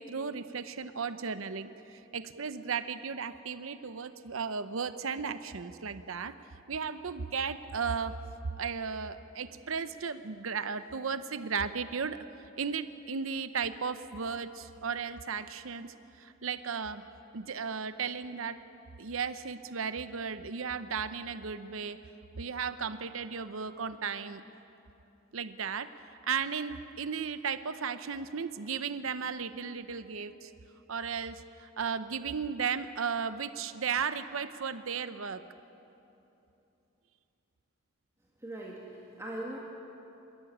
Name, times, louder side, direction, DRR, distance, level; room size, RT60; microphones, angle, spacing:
voice 1, 0.0-6.3 6.7-8.1 8.6-17.0 17.3-18.6 19.0-22.0 22.4-24.4 25.3-25.9 26.3-30.5 30.9-35.4, right 6 dB, 70° right, 12 dB, 0.8 m, -35 dB
voice 2, 38.4-39.6, right 1 dB, 15° right, -4 dB, 2.0 m, -40 dB
26.5 x 13.5 x 9.9 m, 3.0 s
head